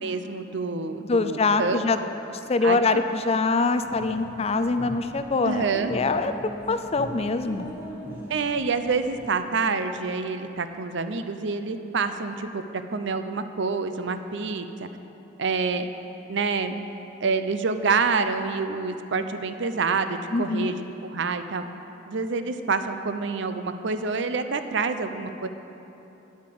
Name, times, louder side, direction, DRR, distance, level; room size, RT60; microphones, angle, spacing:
voice 1, 0.0-1.8 2.6-3.0 5.4-5.9 8.3-14.9 15.4-15.9 16.3-16.7 17.2-21.6 22.1-25.5, right 4 dB, 65° right, 9 dB, 0.6 m, -27 dB
voice 2, 1.1-2.0 2.5-5.6 5.9-6.3 6.7-7.7 20.3-20.7, left 3 dB, 30° left, 9 dB, 0.5 m, -24 dB
sound 1, 3.8-9.2, equal, 10° right, 1.6 m, -40 dB
9.6 x 8.6 x 7.7 m, 3.0 s
head